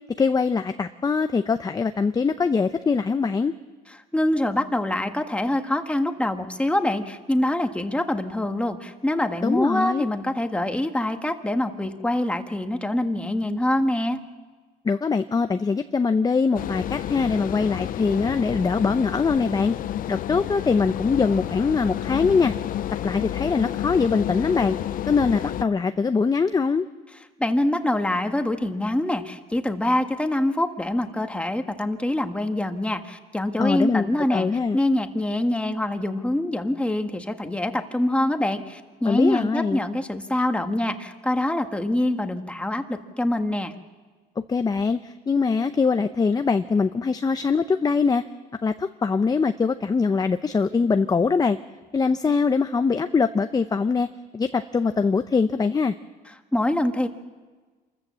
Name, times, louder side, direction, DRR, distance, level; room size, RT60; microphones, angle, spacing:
voice 1, 0.2-3.5 9.4-10.0 14.8-19.8 20.1-22.5 23.0-24.8 25.0-26.8 33.6-34.8 39.0-39.8 44.5-48.2 48.6-51.6 51.9-54.1 54.3-56.0, left 5 dB, 20° left, 9 dB, 0.7 m, -22 dB
voice 2, 4.1-14.2 27.4-34.5 34.7-43.7 56.5-57.1, left 1 dB, 5° left, 6 dB, 1.5 m, -25 dB
sound 1, 16.5-25.6, left 12 dB, 55° left, 0.6 m, -30 dB
26.5 x 14.5 x 7.5 m, 1.4 s
cardioid pair, 110°, 17 cm